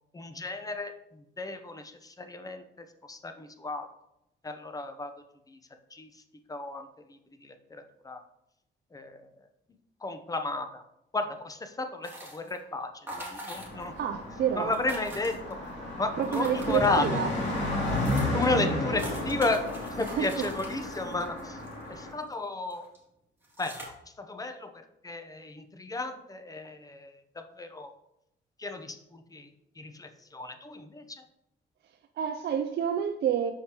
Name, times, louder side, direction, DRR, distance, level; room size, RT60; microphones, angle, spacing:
voice 1, 0.1-2.6 3.1-3.9 4.4-5.1 5.5-5.6 5.9-6.1 6.5-8.2 8.9-9.2 10.0-10.8 11.1-13.9 14.6-15.6 16.0-17.0 18.3-19.6 20.0-21.6 21.9-22.9 23.6-23.9 24.2-27.9 28.6-29.5 29.8-31.1, left 2 dB, 20° left, 7 dB, 0.7 m, -33 dB
sound 1, 12.0-12.6 13.1-14.0 14.3-14.4 14.6-15.7 16.2-17.3 17.7-17.8 18.0-22.3 22.7-23.0 23.4-23.9, right 1 dB, 10° right, 2.3 m, -43 dB
Car passing by, 13.5-22.1, left 1 dB, 65° left, 2.4 m, -33 dB
voice 2, 14.0-14.8 16.2-17.3 18.1-18.4 20.0-20.5 32.2-33.5, right 8 dB, 55° right, 6 dB, 0.5 m, -29 dB
6.5 x 5.1 x 2.9 m, 0.82 s
cardioid pair, 90°, 20 cm